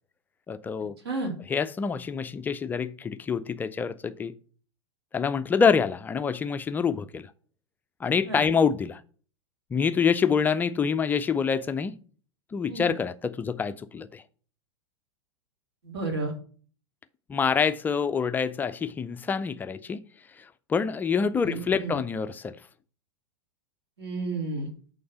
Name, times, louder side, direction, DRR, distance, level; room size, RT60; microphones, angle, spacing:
voice 1, 0.5-1.0 1.4-4.3 5.1-7.3 8.0-9.0 9.7-12.0 12.5-14.2 17.3-20.0 20.7-22.6, left 6 dB, 15° left, 0.3 m, -26 dB
voice 2, 15.8-16.3 21.4-22.0 24.0-24.7, right 3 dB, 60° right, 2.4 m, -31 dB
8.4 x 3.8 x 5.7 m
figure-of-eight pair, 95°, 15 cm